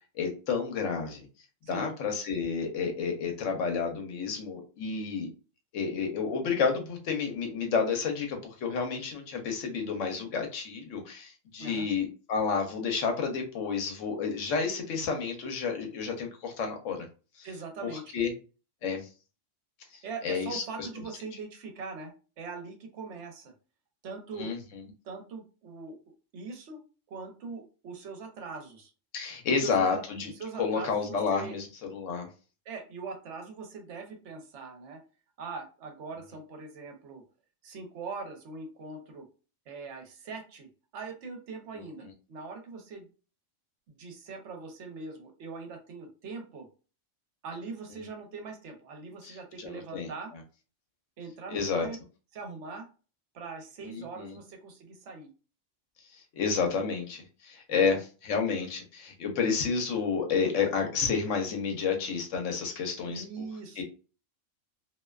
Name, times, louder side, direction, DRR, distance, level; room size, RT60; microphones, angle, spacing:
voice 1, 0.1-1.3 1.7-5.3 5.7-17.1 17.4-17.5 18.1-18.3 18.8-19.0 20.2-20.9 24.3-24.8 29.1-30.3 30.6-32.3 49.2-50.1 51.5-51.9 53.8-54.4 56.3-58.0 58.2-63.5 63.8-63.9, left 5 dB, 80° left, 3 dB, 1.0 m, -30 dB
voice 2, 17.4-18.1 20.0-22.1 22.4-23.5 24.0-24.5 25.0-26.0 26.3-26.8 27.1-28.9 29.6-30.0 30.4-31.6 32.7-35.0 35.4-37.2 37.6-39.3 39.7-40.7 40.9-43.1 43.9-46.7 47.4-50.3 51.2-52.0 52.3-52.9 53.3-55.3 57.7-58.0 63.1-63.8, right 4 dB, 70° right, 3 dB, 0.9 m, -41 dB
2.5 x 2.2 x 2.2 m, 0.35 s
omnidirectional pair, 1.3 m